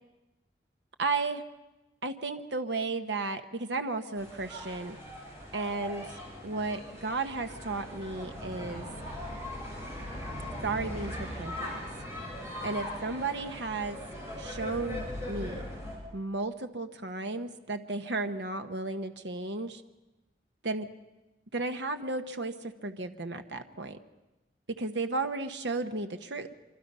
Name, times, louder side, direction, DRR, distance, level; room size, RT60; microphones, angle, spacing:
voice 1, 1.0-1.4 2.0-5.0 5.5-6.2 6.4-8.9 10.6-11.7 12.6-14.0 14.4-15.6 16.1-19.8 20.6-20.9 21.5-24.0 24.8-26.5, right 3 dB, 85° right, 7 dB, 1.1 m, -34 dB
sound 1, 4.2-16.0, left 1 dB, 15° right, 7.6 m, -40 dB
25.5 x 25.5 x 5.5 m, 1.0 s
head